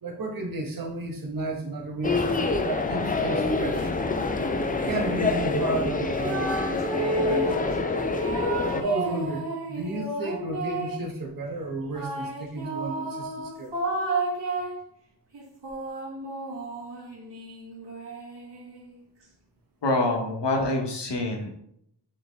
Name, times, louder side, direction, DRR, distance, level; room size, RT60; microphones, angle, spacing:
voice 1, 0.0-2.3 2.6-3.9 4.7-8.0 8.7-13.7, right 2 dB, 50° right, 1 dB, 1.0 m, -33 dB
sound 1, 2.0-8.8, left 3 dB, 20° left, 0.4 m, -26 dB
sound 2, 6.2-7.6 8.2-11.1 11.9-14.8 15.3-19.0, right 2 dB, 75° right, 1.6 m, -32 dB
voice 2, 19.8-21.5, left 2 dB, 75° left, 2 dB, 1.0 m, -26 dB
4.1 x 3.4 x 3.4 m, 0.71 s
wide cardioid pair, 100°, 43 cm